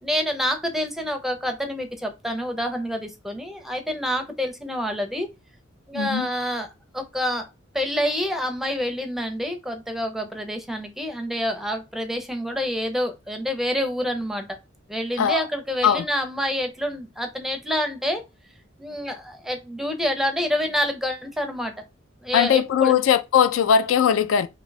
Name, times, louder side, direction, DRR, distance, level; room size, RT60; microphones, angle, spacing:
voice 1, 0.0-5.3 5.9-6.7 6.9-7.5 7.7-14.6 14.9-18.2 18.8-21.7 22.2-23.0, equal, ahead, 0.5 m, -27 dB
voice 2, 5.9-6.3 15.2-15.5 15.8-16.1 22.3-24.5, left 8 dB, 70° left, 0.3 m, -19 dB
2.8 x 2.2 x 3.9 m
head